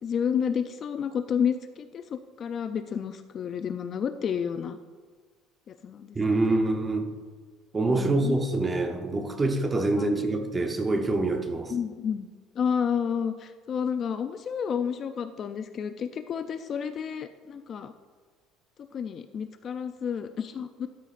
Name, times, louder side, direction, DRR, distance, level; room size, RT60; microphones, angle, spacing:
voice 1, 0.0-4.8 5.7-6.2 6.5-6.6 7.9-8.4 10.0-10.1 11.7-12.3 12.6-17.9 18.9-20.9, left 7 dB, 35° left, 0.3 m, -30 dB
voice 2, 6.1-7.1 7.7-11.7, right 2 dB, 15° right, 0.8 m, -25 dB
12.0 x 9.1 x 2.5 m
cardioid pair, 155°, 0 cm